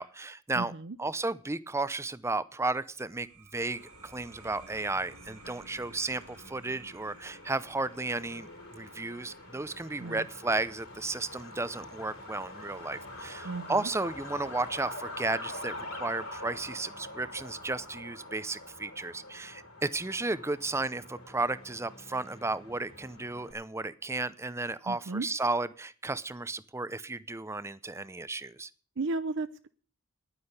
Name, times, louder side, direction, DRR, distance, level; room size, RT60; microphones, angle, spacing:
voice 1, 0.0-0.7 1.0-28.7, right 3 dB, 10° right, 16 dB, 0.6 m, -34 dB
voice 2, 0.6-1.0 10.0-10.3 13.4-13.9 24.9-25.3 29.0-29.7, right 3 dB, 55° right, 11 dB, 0.6 m, -34 dB
sound 1, 2.9-14.1, right 3 dB, 85° right, 2.0 m, -57 dB
Truck, 3.5-23.5, left 1 dB, 70° left, 5.2 m, -46 dB
10.5 x 9.8 x 8.0 m, 0.42 s
head